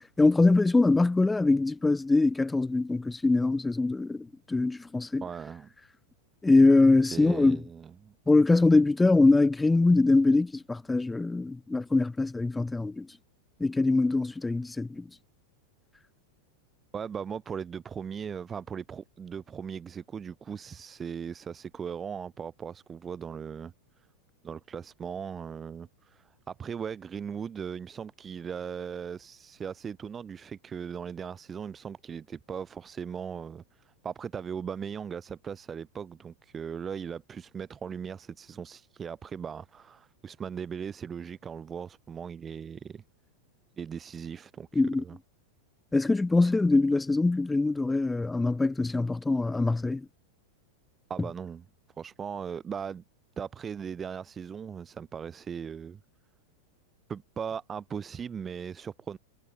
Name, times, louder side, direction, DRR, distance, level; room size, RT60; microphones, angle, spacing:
voice 1, 0.2-5.2 6.4-7.6 8.3-13.1 13.6-15.0 44.8-45.0 45.9-50.1, left 3 dB, 10° left, 2.3 m, -23 dB
voice 2, 5.2-5.7 7.1-8.1 16.9-24.1 24.4-43.0 43.8-45.2 51.1-51.6 52.0-53.0 53.4-56.0 57.1-59.2, right 7 dB, 20° right, 2.3 m, -38 dB
figure-of-eight pair, 90°, 0 cm